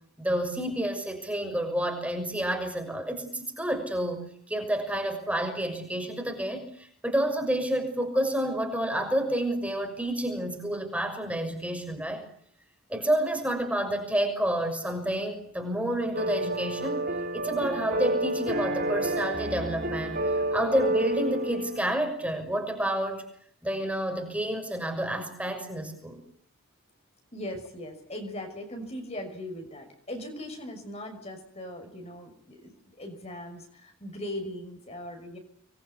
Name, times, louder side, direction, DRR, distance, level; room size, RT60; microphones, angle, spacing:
voice 1, 0.2-4.2 4.5-12.2 12.9-17.0 17.3-23.2 23.6-26.2, right 1 dB, 5° right, 4 dB, 6.3 m, -29 dB
sound 1, 16.1-22.0, right 1 dB, 40° right, 4.3 m, -29 dB
voice 2, 27.3-35.4, left 1 dB, 30° left, 4 dB, 6.2 m, -39 dB
27.0 x 22.5 x 9.8 m, 0.64 s
head